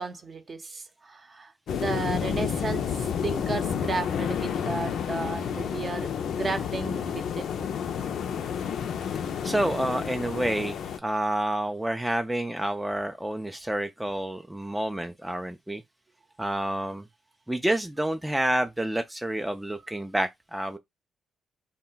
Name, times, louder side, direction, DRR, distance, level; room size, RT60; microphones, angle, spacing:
voice 1, 0.0-2.9 3.2-7.7, right 3 dB, 40° right, 0.6 m, -34 dB
sound 1, 1.7-11.0, left 7 dB, 70° left, 0.4 m, -30 dB
voice 2, 9.4-15.8 16.4-17.0 17.5-20.8, right 1 dB, 10° right, 0.3 m, -29 dB
2.1 x 2.1 x 3.8 m
supercardioid pair, 70°, 0 cm